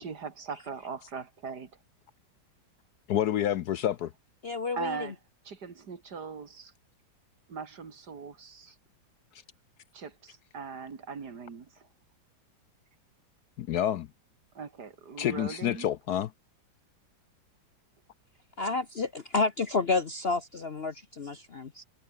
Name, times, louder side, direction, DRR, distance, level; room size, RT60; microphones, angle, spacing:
voice 1, 0.0-1.7 4.7-5.2 5.4-6.7 7.5-8.7 9.9-11.9 14.5-15.9, right 5 dB, 60° right, 2.7 m, -40 dB
voice 2, 3.1-4.1 13.6-14.1 15.2-16.3, left 11 dB, 65° left, 1.1 m, -28 dB
voice 3, 4.4-5.0 18.6-21.8, left 3 dB, 45° left, 0.9 m, -30 dB
omnidirectional pair, 2.0 m